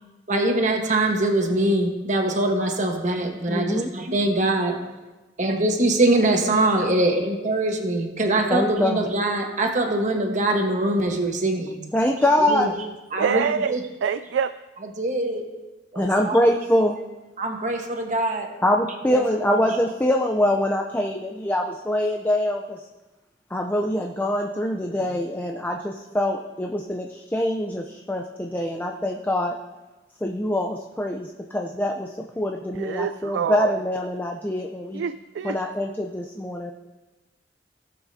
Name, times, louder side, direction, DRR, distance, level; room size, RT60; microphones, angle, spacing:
voice 1, 0.3-4.8 5.4-11.8 12.4-12.7 13.1-13.8 15.0-15.4 15.9-16.4 17.4-18.5 19.1-19.2 19.5-19.6, right 1 dB, 45° right, 2 dB, 1.2 m, -23 dB
voice 2, 3.5-3.9 8.5-9.0 11.9-12.7 16.0-17.0 18.6-22.8 23.5-29.6 30.2-32.1 32.4-35.0 35.4-36.7, left 1 dB, 10° left, 1 dB, 0.5 m, -24 dB
voice 3, 13.2-14.5 25.0-25.2 32.8-33.7 34.9-35.6, right 7 dB, 85° right, 12 dB, 0.3 m, -26 dB
17.5 x 7.3 x 2.7 m, 1.1 s
head